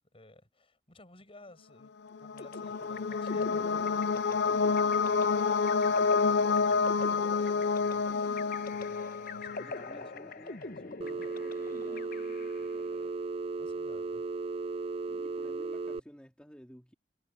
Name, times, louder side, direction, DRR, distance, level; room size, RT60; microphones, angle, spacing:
voice 1, 0.1-10.3 12.9-13.1 13.6-14.3, left 2 dB, 35° left, 7.9 m, -57 dB
sound 1, 2.1-9.9, left 5 dB, 75° left, 0.6 m, -28 dB
sound 2, 2.4-12.8, left 3 dB, 55° left, 1.2 m, -44 dB
voice 2, 9.5-13.0 14.7-16.9, equal, 5° left, 3.1 m, -54 dB
Telephone, 11.0-16.0, right 3 dB, 35° right, 0.4 m, -36 dB
head